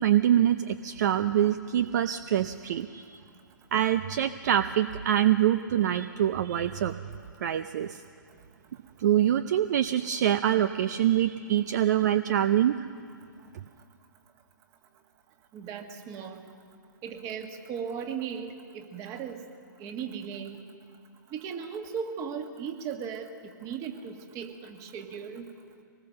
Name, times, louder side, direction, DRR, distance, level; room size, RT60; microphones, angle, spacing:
voice 1, 0.0-3.2 3.7-6.9 7.4-8.0 9.0-12.9, right 11 dB, 55° right, 12 dB, 0.6 m, -25 dB
voice 2, 15.5-16.4 17.0-19.4 19.8-20.6 21.3-23.3 23.6-25.5, right 7 dB, 30° right, 5 dB, 1.8 m, -37 dB
24.0 x 20.0 x 6.6 m, 2.3 s
hypercardioid pair, 125°, 11 cm